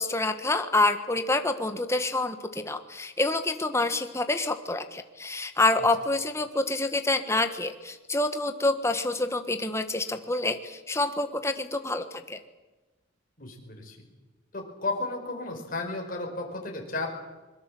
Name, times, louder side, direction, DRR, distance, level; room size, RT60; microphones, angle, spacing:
voice 1, 0.0-12.4, left 2 dB, 15° left, 8 dB, 1.4 m, -27 dB
voice 2, 13.4-14.1 14.5-17.2, left 3 dB, 45° left, 0 dB, 5.1 m, -33 dB
24.0 x 22.0 x 7.7 m, 1.2 s
head